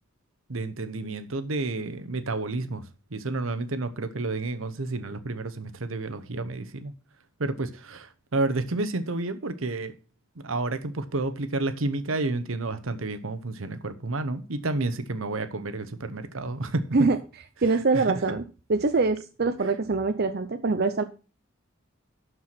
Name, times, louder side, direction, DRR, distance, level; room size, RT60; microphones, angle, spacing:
voice 1, 0.5-2.8 3.1-6.9 7.4-9.9 10.4-16.8 17.9-18.2, right 2 dB, 80° right, 1.0 m, -30 dB
voice 2, 17.6-18.4 18.7-21.0, right 3 dB, 50° right, 0.6 m, -24 dB
12.0 x 4.7 x 5.9 m
head